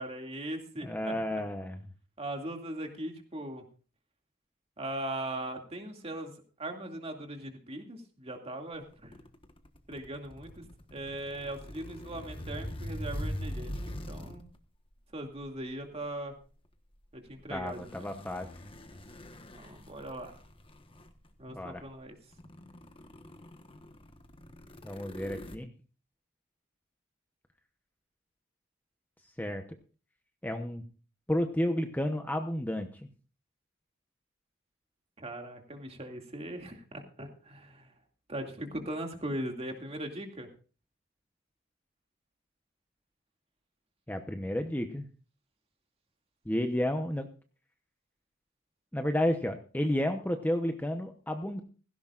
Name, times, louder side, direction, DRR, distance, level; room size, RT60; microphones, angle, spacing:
voice 1, 0.0-1.1 2.2-3.6 4.8-6.3 6.6-9.2 9.9-10.6 10.9-14.5 15.1-16.3 17.1-18.0 19.6-20.4 21.4-22.2 35.2-37.9 38.3-40.5, right 1 dB, 30° right, 3 dB, 2.4 m, -39 dB
voice 2, 0.8-1.8 17.5-18.5 21.5-21.8 24.8-25.7 29.4-29.6 30.4-30.8 31.3-33.1 44.1-45.1 46.4-47.3 48.9-51.6, left 1 dB, 10° left, 5 dB, 0.9 m, -31 dB
sound 1, 8.9-14.6 15.4-15.6 17.5-21.3 21.9-22.0 22.3-25.6, equal, 25° left, 1.3 m, -42 dB
16.5 x 16.5 x 2.5 m, 0.37 s
head